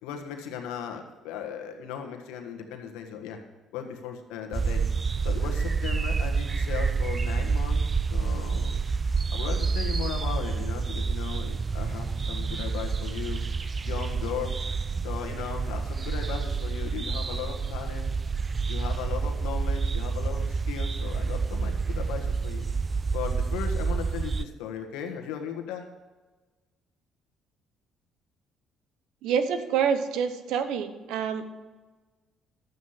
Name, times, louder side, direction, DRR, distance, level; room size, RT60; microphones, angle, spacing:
voice 1, 0.0-3.4 3.7-4.8 5.2-8.8 9.3-13.4 13.8-14.6 15.0-18.1 18.7-22.7 23.1-25.9, left 8 dB, 85° left, 3 dB, 1.5 m, -37 dB
sound 1, 4.5-24.4, right 5 dB, 35° right, 0.4 m, -28 dB
voice 2, 29.2-31.4, right 7 dB, 80° right, 10 dB, 1.0 m, -27 dB
12.5 x 8.2 x 5.7 m, 1.3 s
supercardioid pair, 80°, 0 cm